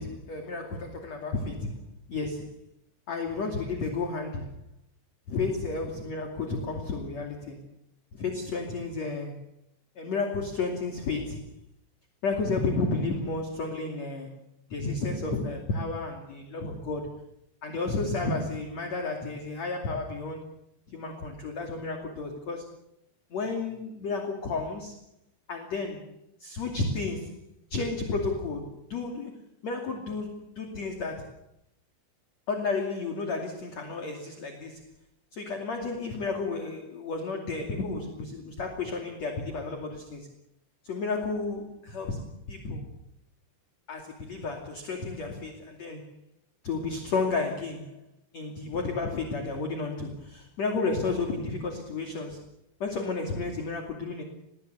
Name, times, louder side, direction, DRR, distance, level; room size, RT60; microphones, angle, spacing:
voice 1, 0.0-1.8 2.1-2.6 3.1-4.5 5.3-7.6 8.1-9.4 10.0-11.6 12.2-14.3 14.7-17.1 17.6-20.5 20.9-22.7 23.3-25.0 25.5-26.0 26.4-27.4 27.7-29.3 29.6-31.3 32.5-34.9 35.3-40.3 40.8-42.9 43.9-46.1 46.6-48.0 48.3-52.4 52.8-54.2, left 3 dB, 40° left, 3 dB, 3.4 m, -32 dB
28.0 x 21.0 x 6.9 m, 0.78 s
omnidirectional pair, 5.2 m